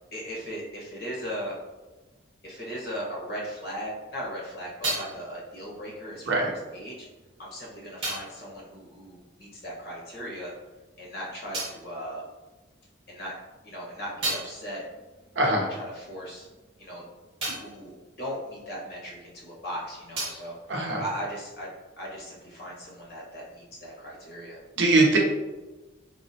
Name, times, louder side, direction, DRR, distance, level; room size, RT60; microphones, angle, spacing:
voice 1, 0.1-1.5 2.4-7.1 7.4-10.5 11.0-12.2 13.1-13.3 13.6-14.8 15.3-16.5 16.8-17.0 17.4-20.6 21.0-21.7 22.0-24.6, equal, 50° left, -4 dB, 0.9 m, -38 dB
sound 1, 4.2-10.0 10.3-13.0 13.4-19.4 19.7-21.7, right 2 dB, 30° right, 1.0 m, -39 dB
voice 2, 15.4-15.7 20.7-21.0 24.8-25.2, right 2 dB, 70° right, -1 dB, 0.6 m, -21 dB
3.5 x 2.0 x 2.6 m, 1.2 s
head